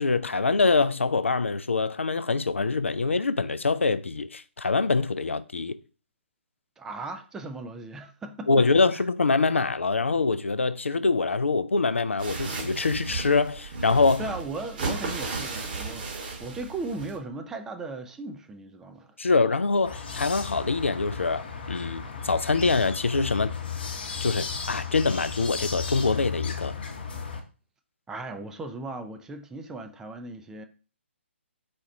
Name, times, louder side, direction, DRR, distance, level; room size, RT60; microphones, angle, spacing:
voice 1, 0.0-5.8 8.5-14.2 19.2-23.5 24.2-26.8, left 4 dB, 80° left, 0.3 m, -24 dB
voice 2, 6.8-8.7 8.9-9.0 14.2-19.2 28.1-30.7, right 3 dB, 10° right, 0.3 m, -37 dB
sound 1, 12.2-17.2, right 3 dB, 45° right, 1.2 m, -34 dB
sound 2, 19.8-27.4, left 6 dB, 50° left, 0.8 m, -34 dB
4.3 x 2.3 x 4.3 m
figure-of-eight pair, 135°, 7 cm